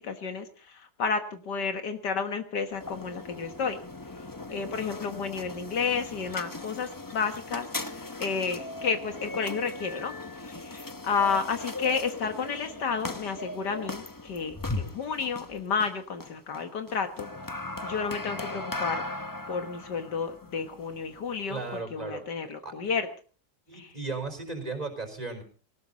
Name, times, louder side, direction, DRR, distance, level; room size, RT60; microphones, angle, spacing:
voice 1, 0.0-3.8 4.5-19.1 19.5-21.6 21.9-23.1 23.7-23.9, left 5 dB, 70° left, 8 dB, 2.0 m, -31 dB
sound 1, 2.7-21.8, left 2 dB, 15° left, 0.6 m, -38 dB
voice 2, 21.5-22.2 22.6-22.7 23.7-25.4, right 3 dB, 20° right, 5 dB, 4.4 m, -35 dB
19.0 x 18.5 x 4.1 m, 0.40 s
omnidirectional pair, 1.9 m